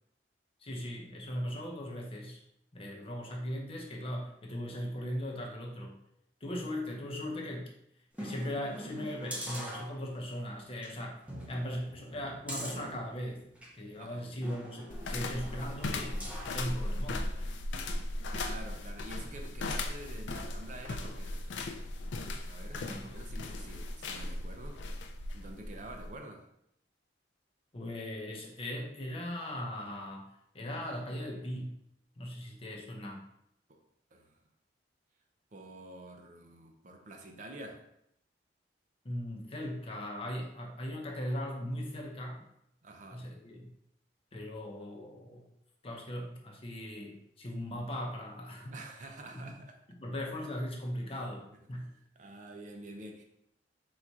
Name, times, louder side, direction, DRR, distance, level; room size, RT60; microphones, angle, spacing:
voice 1, 0.6-2.4 2.7-5.9 6.4-7.7 8.2-11.2 11.5-13.5 13.7-17.5 22.8-23.0 27.7-30.3 30.5-31.8 32.2-33.2 39.0-42.5 43.1-43.7 44.3-45.4 45.8-48.8 49.3-49.5 50.0-52.0, equal, 30° left, 0 dB, 0.7 m, -39 dB
sound 1, 8.1-10.4 10.8-10.9 11.3-13.8 14.4-16.6 17.1-17.2, equal, 5° right, 0.7 m, -44 dB
voice 2, 14.0-14.3 18.3-21.7 22.5-24.8 25.3-26.5 33.7-33.8 34.1-34.4 35.5-37.8 42.8-43.3 48.7-49.8 51.8-51.9 52.2-53.2, right 2 dB, 45° right, 3 dB, 0.5 m, -48 dB
sound 2, 14.9-26.2, left 2 dB, 80° left, 0.4 m, -37 dB
4.0 x 2.4 x 4.5 m, 0.75 s
head